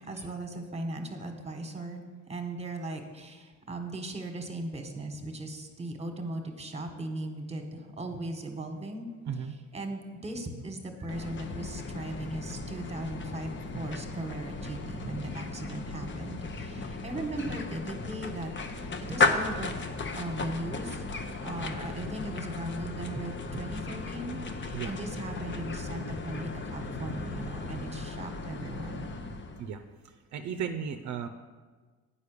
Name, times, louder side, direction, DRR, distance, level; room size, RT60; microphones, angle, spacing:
voice 1, 0.0-9.1 9.4-18.5 18.8-19.8 20.1-29.1, right 2 dB, 20° right, 5 dB, 1.4 m, -38 dB
sound 1, 11.1-29.7, left 3 dB, 40° left, 0.8 m, -35 dB
voice 2, 30.3-31.3, right 7 dB, 65° right, 7 dB, 0.6 m, -34 dB
8.3 x 5.5 x 6.6 m, 1.4 s
cardioid pair, 90°, 30 cm